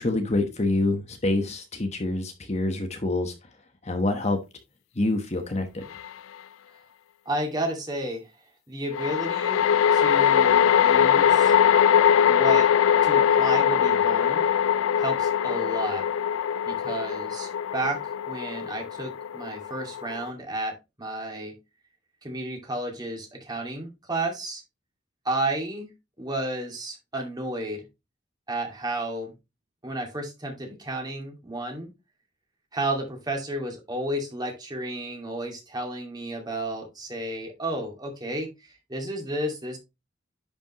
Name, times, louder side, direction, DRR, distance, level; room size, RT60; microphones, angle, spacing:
voice 1, 0.0-3.3 3.8-4.4 5.0-5.9, left 2 dB, 35° left, 1.1 m, -26 dB
sound 1, 6.0-6.1 8.9-20.3, left 8 dB, 90° left, 0.3 m, -21 dB
voice 2, 7.3-8.3 8.7-9.6 9.9-11.5 12.3-12.7 13.0-14.5 15.0-16.0 16.7-21.5 22.2-24.6 25.2-25.9 26.2-27.8 28.5-29.3 29.8-31.9 32.7-39.8, right 1 dB, 20° right, 2.3 m, -32 dB
10.5 x 5.3 x 2.9 m
head